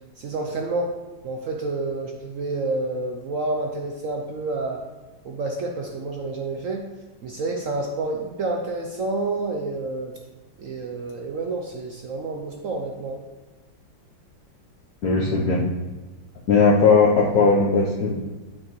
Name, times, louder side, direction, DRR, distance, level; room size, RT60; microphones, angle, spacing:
voice 1, 0.2-0.9 1.2-4.8 5.2-6.8 7.2-10.1 10.6-13.2, right 2 dB, 65° right, 1 dB, 0.8 m, -29 dB
voice 2, 15.0-15.6 16.5-18.2, left 4 dB, 60° left, -4 dB, 1.2 m, -18 dB
8.8 x 6.1 x 3.1 m, 1.1 s
omnidirectional pair, 2.0 m